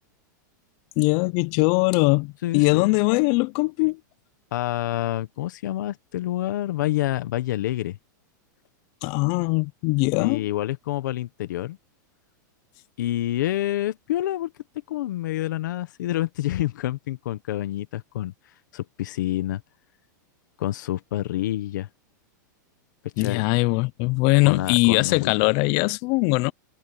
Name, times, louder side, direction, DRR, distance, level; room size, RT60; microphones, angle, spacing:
voice 1, 1.0-4.0 9.0-10.4 23.2-26.5, left 27 dB, 40° left, 0.5 m, -21 dB
voice 2, 2.4-2.9 4.5-8.0 10.2-11.8 13.0-14.5 14.9-19.6 20.6-21.9 23.0-23.4 24.4-25.3, left 14 dB, 70° left, 1.3 m, -28 dB
supercardioid pair, 150°, 10 cm